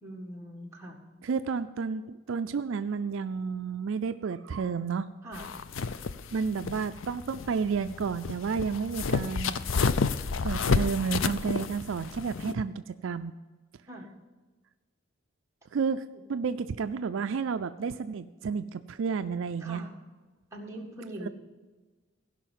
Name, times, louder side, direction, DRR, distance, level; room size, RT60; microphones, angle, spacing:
voice 1, 0.0-1.0 5.2-5.5 13.9-14.1 19.6-20.0 20.5-21.3, right 1 dB, 15° right, -2 dB, 1.8 m, -42 dB
voice 2, 1.2-5.1 6.3-9.5 10.4-13.3 15.7-16.0 16.3-19.9 21.2-21.3, right 5 dB, 65° right, 10 dB, 0.4 m, -31 dB
sound 1, 5.3-12.5, left 4 dB, 65° left, 0.5 m, -30 dB
16.0 x 5.6 x 7.5 m, 1.3 s
head